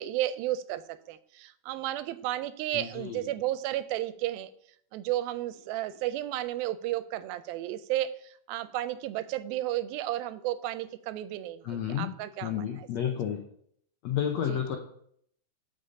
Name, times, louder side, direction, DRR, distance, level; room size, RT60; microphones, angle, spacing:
voice 1, 0.0-4.5 4.9-12.6 14.5-14.8, right 14 dB, 90° right, 14 dB, 2.4 m, -33 dB
voice 2, 2.7-3.2 11.6-12.1 12.4-13.4 14.0-14.8, left 9 dB, 80° left, 3 dB, 1.5 m, -31 dB
7.3 x 5.5 x 6.5 m, 0.66 s
omnidirectional pair, 4.2 m